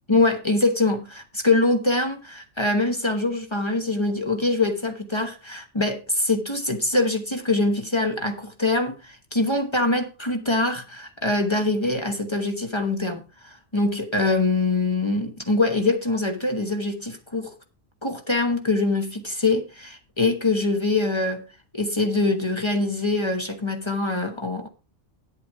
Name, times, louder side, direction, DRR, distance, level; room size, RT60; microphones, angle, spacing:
voice 1, 0.1-17.5 18.0-21.4 21.7-24.7, left 2 dB, 25° left, 1.1 m, -24 dB
9.1 x 8.1 x 4.7 m
omnidirectional pair, 1.2 m